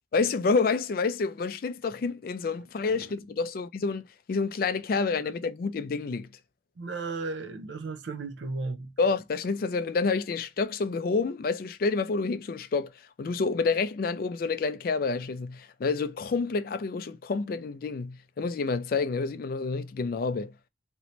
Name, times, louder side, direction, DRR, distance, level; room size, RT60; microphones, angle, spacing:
voice 1, 0.1-6.3 9.0-20.5, left 4 dB, 50° left, 0.3 m, -28 dB
voice 2, 6.8-8.9, right 3 dB, 75° right, 0.6 m, -34 dB
3.0 x 2.7 x 3.0 m
head